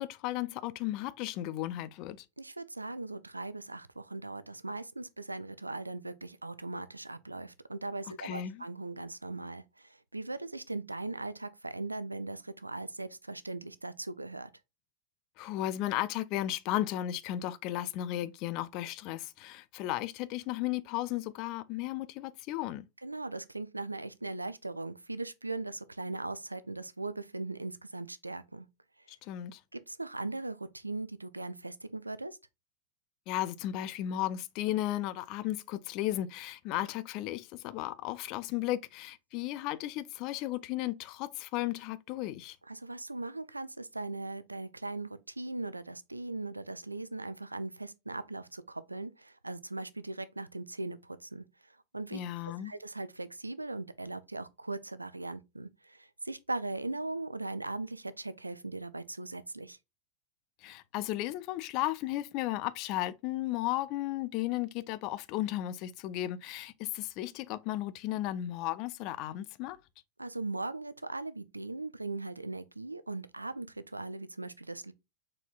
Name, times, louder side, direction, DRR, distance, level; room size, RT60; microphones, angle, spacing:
voice 1, 0.0-2.3 8.2-8.6 15.4-22.8 29.1-29.6 33.3-42.6 52.1-52.7 60.6-69.8, left 14 dB, 40° left, 0.4 m, -35 dB
voice 2, 2.4-14.5 23.0-28.7 29.0-29.1 29.7-32.4 42.7-52.2 52.6-59.8 70.2-74.9, right 2 dB, 85° right, 0.4 m, -39 dB
4.3 x 4.2 x 2.3 m
figure-of-eight pair, 90°, 0 cm